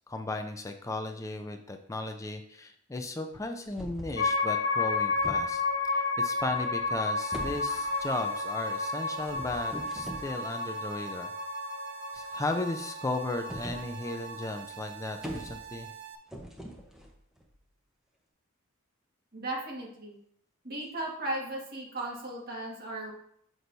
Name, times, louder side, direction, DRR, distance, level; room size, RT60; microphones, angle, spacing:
voice 1, 0.1-11.3 12.1-15.9, left 2 dB, 15° left, 5 dB, 0.3 m, -36 dB
sound 1, 3.7-4.3 4.8-5.8 6.4-7.0 7.3-8.1 9.1-10.3 13.5-13.9 14.2-14.3 14.6-14.7 14.9-15.9 16.3-17.6, equal, ahead, 0.8 m, -42 dB
sound 2, 4.2-14.6, left 3 dB, 65° left, 1.5 m, -32 dB
sound 3, 7.2-16.2, right 9 dB, 90° right, 0.6 m, -45 dB
voice 2, 19.3-20.2 20.6-23.1, right 1 dB, 40° right, -3 dB, 1.7 m, -36 dB
6.4 x 6.1 x 2.7 m, 0.69 s
head